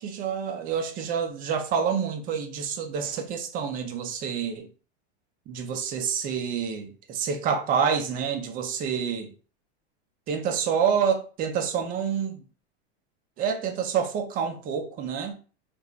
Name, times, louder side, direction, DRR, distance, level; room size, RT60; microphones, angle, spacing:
voice 1, 0.0-4.7 5.5-9.3 10.3-12.4 13.4-15.4, right 7 dB, 25° right, 0.4 m, -28 dB
2.8 x 2.2 x 2.4 m
supercardioid pair, 125°, 34 cm